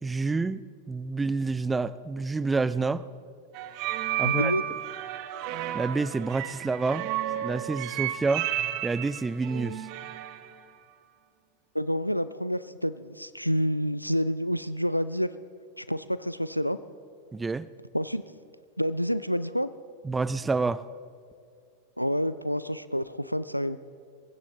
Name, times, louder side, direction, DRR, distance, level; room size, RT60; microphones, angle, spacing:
voice 1, 0.0-3.1 4.2-4.5 5.7-7.1 7.4-8.5 8.8-9.9 17.3-17.7 20.0-20.8, right 3 dB, 10° right, 17 dB, 0.4 m, -28 dB
sound 1, 3.5-10.5, right 13 dB, 45° right, 0.8 m, -32 dB
voice 2, 4.2-4.6 11.7-15.3 15.8-16.8 17.9-18.2 18.8-19.7 22.0-23.8, equal, 90° left, 14 dB, 0.4 m, -28 dB
25.5 x 15.5 x 3.1 m, 2.3 s
figure-of-eight pair, 90°, 0 cm